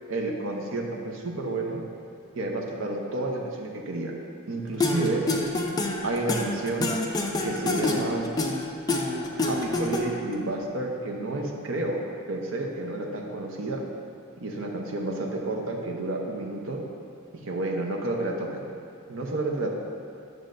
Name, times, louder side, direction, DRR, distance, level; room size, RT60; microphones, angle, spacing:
voice 1, 0.1-1.8 2.3-4.1 4.5-5.2 6.0-6.9 7.4-8.3 9.1-12.0 12.3-13.9 14.4-16.8 17.5-18.7 19.1-19.7, right 2 dB, 65° right, 0 dB, 0.8 m, -30 dB
sound 1, 4.8-10.3, left 2 dB, 20° left, 0.4 m, -27 dB
9.3 x 6.3 x 2.6 m, 2.6 s
head